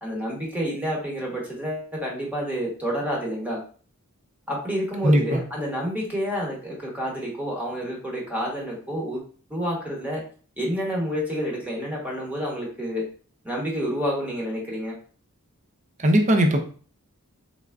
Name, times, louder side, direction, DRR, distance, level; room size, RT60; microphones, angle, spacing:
voice 1, 0.0-3.6 4.5-9.2 9.5-10.2 10.6-13.0 13.4-14.9, equal, 5° right, -3 dB, 1.0 m, -29 dB
voice 2, 5.0-5.4 16.0-16.6, right 1 dB, 35° right, 5 dB, 0.5 m, -19 dB
3.6 x 3.3 x 2.4 m, 0.41 s
head